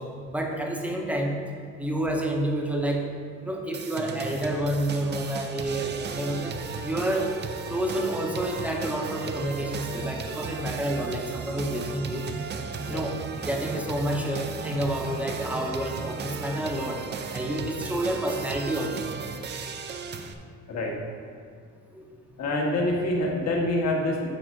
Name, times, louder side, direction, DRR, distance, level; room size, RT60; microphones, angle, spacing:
voice 1, 0.0-1.4 1.8-3.1 3.4-7.4 7.7-12.3 12.9-17.0 17.3-19.1 21.9-22.2, right 1 dB, 5° right, 1 dB, 0.9 m, -29 dB
sound 1, 3.7-20.3, right 5 dB, 35° right, 0.5 m, -35 dB
voice 2, 22.4-24.3, left 1 dB, 55° left, -1 dB, 1.6 m, -26 dB
9.2 x 3.6 x 6.4 m, 2.3 s
cardioid pair, 135°, 32 cm